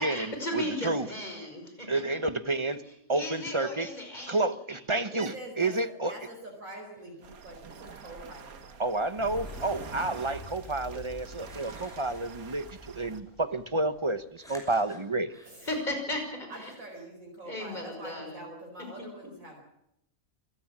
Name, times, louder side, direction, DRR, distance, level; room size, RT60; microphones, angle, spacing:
voice 1, 0.0-2.6 2.9-4.4 4.7-5.2 15.6-16.5 17.5-18.4, left 1 dB, 30° left, 4 dB, 5.9 m, -36 dB
voice 2, 0.5-1.1 1.9-2.8 3.1-3.9 4.3-5.3 5.6-6.1 8.8-15.3, right 2 dB, 25° right, 12 dB, 0.8 m, -30 dB
voice 3, 5.1-10.6 15.4-15.7 16.5-19.6, right 1 dB, 70° right, 0 dB, 5.1 m, -46 dB
sound 1, 7.0-7.3 7.8-9.2 10.7-10.8 11.4-12.9 14.4-15.9 16.5-17.0, equal, ahead, 5.9 m, -55 dB
sound 2, 7.2-13.2, right 7 dB, 90° right, 1.7 m, -47 dB
sound 3, 9.2-14.7, left 1 dB, 60° left, 4.1 m, -47 dB
26.5 x 16.5 x 7.4 m, 0.80 s
omnidirectional pair, 1.5 m